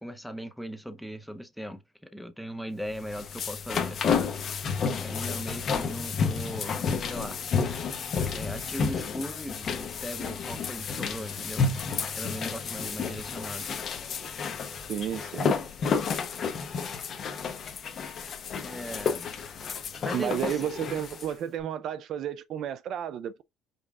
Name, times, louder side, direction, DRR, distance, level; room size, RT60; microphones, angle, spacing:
voice 1, 0.0-4.0 5.0-7.4 8.3-11.7 12.1-13.7 18.6-19.3 20.0-20.7, equal, ahead, 0.6 m, -38 dB
sound 1, 2.9-21.3, left 5 dB, 40° left, 0.8 m, -31 dB
voice 2, 14.9-15.7 20.1-23.4, right 10 dB, 55° right, 0.3 m, -32 dB
5.2 x 2.4 x 3.5 m
cardioid pair, 140°, 0 cm